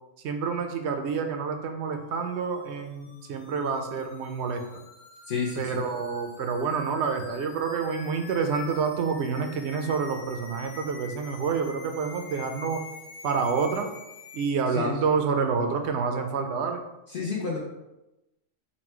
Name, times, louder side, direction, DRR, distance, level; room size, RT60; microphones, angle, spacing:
voice 1, 0.2-4.6 5.6-12.8 13.2-13.9 14.3-16.8, right 5 dB, 65° right, 5 dB, 0.8 m, -28 dB
sound 1, 2.3-14.5, left 6 dB, 85° left, 1.0 m, -47 dB
voice 2, 5.3-5.8 14.7-15.0 17.1-17.6, left 5 dB, 55° left, -3 dB, 0.7 m, -30 dB
4.2 x 2.2 x 4.4 m, 0.96 s
omnidirectional pair, 1.3 m